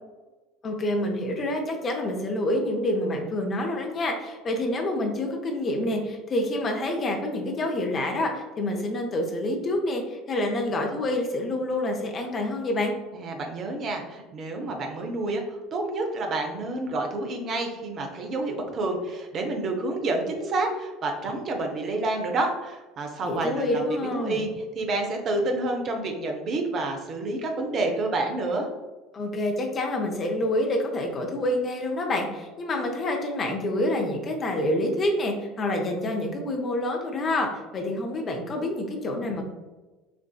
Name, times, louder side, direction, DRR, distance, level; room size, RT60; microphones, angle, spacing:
voice 1, 0.6-12.9 23.2-24.4 29.1-39.4, left 1 dB, 35° left, 2 dB, 0.7 m, -27 dB
voice 2, 13.1-23.8 24.1-28.7, right 2 dB, 40° right, 2 dB, 0.7 m, -29 dB
5.9 x 2.5 x 2.3 m, 1.2 s
figure-of-eight pair, 65°, 0 cm